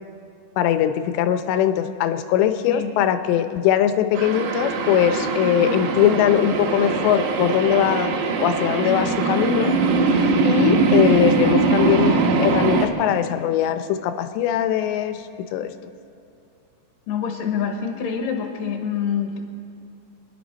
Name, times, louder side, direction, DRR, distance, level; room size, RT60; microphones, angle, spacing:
voice 1, 0.6-8.1 8.4-9.7 10.1-15.2 15.5-15.7, left 10 dB, 85° left, 9 dB, 3.0 m, -21 dB
sound 1, 4.1-12.9, right 4 dB, 85° right, 3.5 m, -21 dB
voice 2, 17.1-19.4, left 7 dB, 65° left, 4 dB, 2.4 m, -26 dB
26.0 x 10.5 x 5.2 m, 2.6 s
omnidirectional pair, 4.9 m